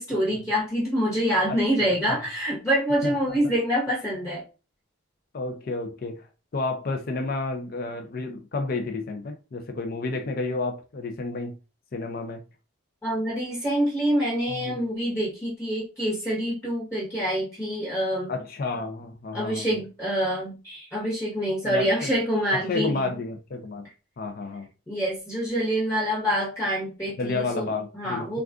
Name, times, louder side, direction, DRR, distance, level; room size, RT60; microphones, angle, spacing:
voice 1, 0.0-4.4 13.0-18.3 19.3-23.1 24.9-28.4, equal, 15° left, 1.0 m, -26 dB
voice 2, 1.5-1.9 3.0-3.4 5.3-6.3 6.5-11.6 11.9-12.4 14.5-14.8 18.3-19.7 21.6-22.1 22.5-23.9 24.2-24.7 27.2-28.4, left 3 dB, 45° left, 0.4 m, -31 dB
3.5 x 2.3 x 2.4 m
head